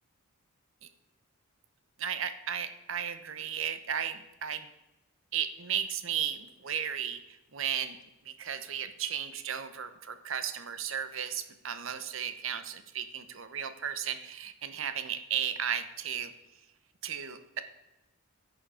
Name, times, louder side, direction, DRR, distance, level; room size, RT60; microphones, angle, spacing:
voice 1, 2.0-4.7 5.3-8.0 8.3-16.3 17.0-17.6, right 8 dB, 65° right, 11 dB, 0.8 m, -35 dB
10.5 x 6.3 x 4.8 m, 0.99 s
head